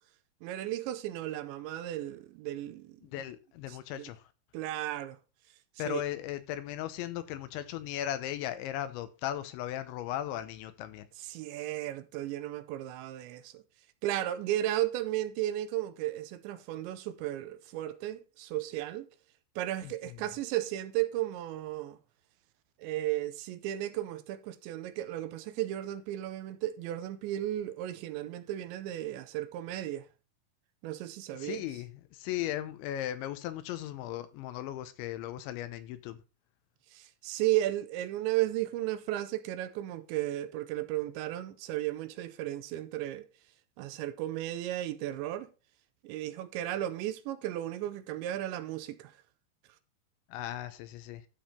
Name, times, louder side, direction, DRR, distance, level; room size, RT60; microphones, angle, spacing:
voice 1, 0.4-3.0 3.7-4.1 4.5-5.2 5.8-6.0 11.2-13.6 14.0-19.1 19.6-22.0 22.8-30.1 30.8-31.6 36.9-43.3 43.8-45.5 46.0-49.1, right 14 dB, 80° right, 2.9 m, -34 dB
voice 2, 3.0-4.2 5.8-11.1 19.8-20.2 31.4-36.2 50.3-51.2, left 12 dB, 80° left, 3.1 m, -37 dB
12.5 x 5.5 x 4.3 m
omnidirectional pair, 5.4 m